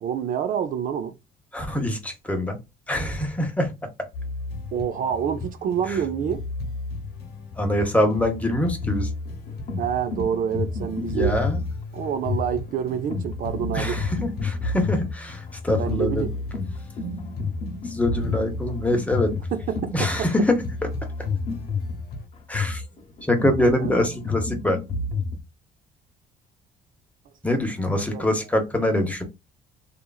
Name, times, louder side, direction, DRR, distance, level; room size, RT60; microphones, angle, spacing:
voice 1, 0.0-1.1 4.7-6.5 9.8-11.4 11.9-14.0 15.8-16.3 19.5-20.3 23.6-23.9 28.1-28.3, right 8 dB, 55° right, 0.4 m, -27 dB
voice 2, 1.5-2.6 2.9-3.7 5.9-6.0 7.6-9.1 11.1-11.6 13.7-16.2 17.8-19.3 19.9-20.6 22.5-22.8 23.3-24.8 27.4-29.2, left 1 dB, 10° left, 0.9 m, -24 dB
sound 1, 4.1-22.3, left 2 dB, 65° left, 0.9 m, -36 dB
sound 2, 8.2-25.4, left 4 dB, 40° left, 0.9 m, -30 dB
3.0 x 2.5 x 2.3 m
cardioid pair, 110°, 17 cm